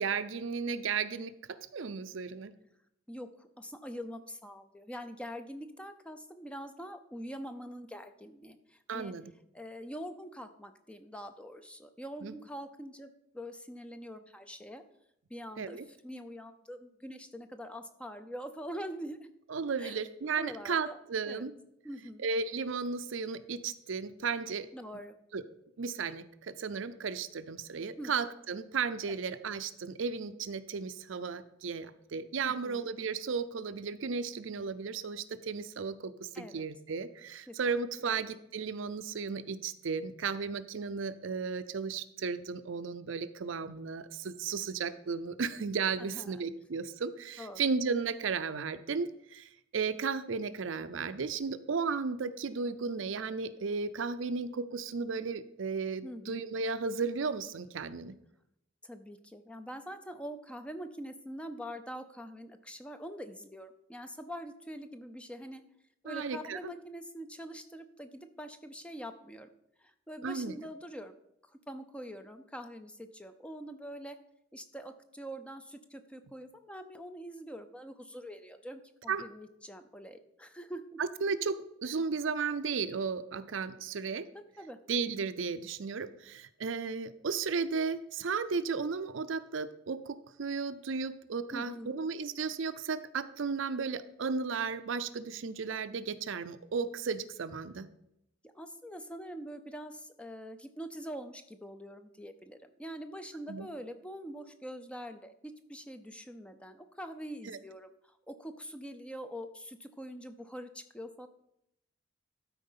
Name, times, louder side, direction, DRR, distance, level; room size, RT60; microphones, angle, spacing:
voice 1, 0.0-2.5 8.9-9.3 12.2-12.3 15.6-15.8 19.5-21.5 22.2-24.7 25.3-25.4 25.8-58.1 66.0-66.7 70.2-70.5 79.1-79.3 81.2-84.3 84.9-97.9 103.5-103.7 107.5-107.6, right 5 dB, 70° right, 12 dB, 0.5 m, -34 dB
voice 2, 3.1-9.1 9.5-14.8 15.3-19.2 19.8-20.0 20.4-21.4 21.8-22.3 24.7-25.1 28.0-28.1 29.1-29.2 32.4-32.9 36.3-36.6 37.5-37.6 46.0-46.4 47.4-47.6 56.0-56.4 58.8-65.6 66.0-69.5 69.8-71.1 71.4-74.2 74.5-81.0 81.8-81.9 84.3-84.8 91.5-92.0 98.4-111.3, equal, 5° left, 9 dB, 0.5 m, -44 dB
12.5 x 4.5 x 5.6 m, 0.78 s
head